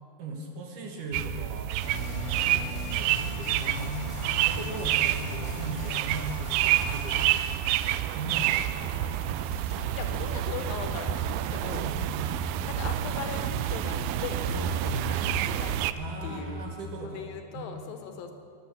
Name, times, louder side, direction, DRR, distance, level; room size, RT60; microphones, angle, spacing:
voice 1, 0.2-4.2 4.4-9.2 11.6-12.0 16.0-17.2 17.5-17.7, right 2 dB, 65° right, 2 dB, 2.9 m, -39 dB
sound 1, 1.1-15.9, right 13 dB, 85° right, 1.9 m, -29 dB
sound 2, 1.8-7.2, left 2 dB, 20° left, 0.8 m, -38 dB
sound 3, 8.7-16.7, left 1 dB, 5° right, 0.9 m, -39 dB
voice 2, 9.9-11.9 12.6-15.8 16.2-16.7 17.0-18.3, left 6 dB, 80° left, 6 dB, 2.8 m, -39 dB
21.5 x 8.0 x 6.9 m, 2.4 s
omnidirectional pair, 4.2 m